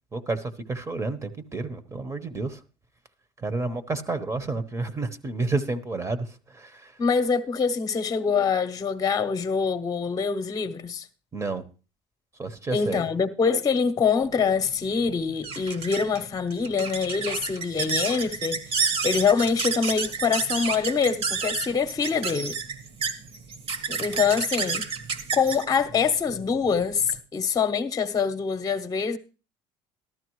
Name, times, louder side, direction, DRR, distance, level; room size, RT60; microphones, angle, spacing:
voice 1, 0.1-2.6 3.4-7.0 11.3-11.6 12.3-13.1, right 3 dB, 25° right, 1.1 m, -30 dB
voice 2, 7.0-11.1 12.7-22.6 23.9-24.9 25.3-29.2, left 5 dB, 30° left, 1.0 m, -25 dB
sound 1, 14.3-27.2, right 5 dB, 50° right, 1.5 m, -31 dB
13.5 x 12.0 x 3.1 m
supercardioid pair, 85°, 12 cm